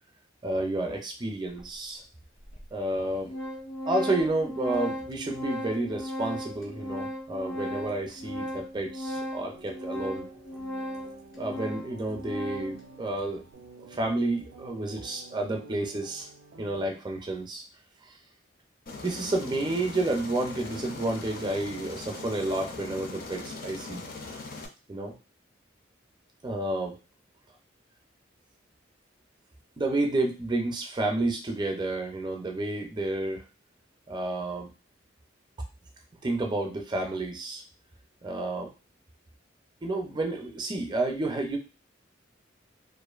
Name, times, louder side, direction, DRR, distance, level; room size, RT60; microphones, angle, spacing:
voice 1, 0.4-2.0 2.7-3.3 3.9-10.3 11.4-13.4 13.9-16.3 16.6-17.6 19.0-24.0 24.9-25.1 26.4-27.0 29.8-33.4 34.1-34.7 36.2-37.6 38.2-38.7 39.8-41.6, right 2 dB, 25° right, 2 dB, 0.5 m, -30 dB
Organ, 1.6-1.7 2.5-2.6 2.9-12.8, equal, 85° left, 1.1 m, -36 dB
sound 1, 9.5-17.0, right 3 dB, 85° right, 0.4 m, -50 dB
Aircraft, 18.9-24.7, left 3 dB, 50° left, 0.5 m, -40 dB
2.5 x 2.4 x 2.3 m, 0.31 s
head